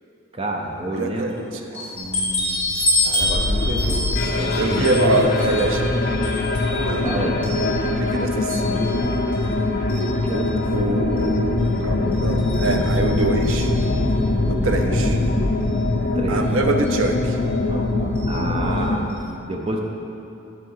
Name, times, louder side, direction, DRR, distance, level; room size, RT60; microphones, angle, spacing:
voice 1, 0.3-1.5 1.7-2.6 3.0-4.0 4.3-5.3 5.8-6.2 6.7-7.4 10.1-10.5 10.8-11.1 14.7-15.5 16.1-16.5 17.7-19.8, right 1 dB, 25° right, 0 dB, 0.7 m, -29 dB
voice 2, 0.9-1.6 4.6-6.0 6.8-7.1 8.0-9.0 10.3-13.7 14.5-15.2 16.3-17.4, right 2 dB, 70° right, 4 dB, 0.6 m, -25 dB
sound 1, 1.7-8.1 8.5-9.5 9.9-10.5 11.2-11.3 11.6-11.7 12.1-14.1 15.1-15.2 15.6-15.7 16.8-17.1 18.2-18.4 18.7-18.8 19.1-19.2, left 1 dB, 5° left, 1.6 m, -28 dB
sound 2, 2.0-19.0, left 2 dB, 45° left, 0.5 m, -23 dB
sound 3, 11.1-15.9, left 1 dB, 30° left, 1.9 m, -27 dB
9.5 x 4.1 x 5.6 m, 2.9 s
head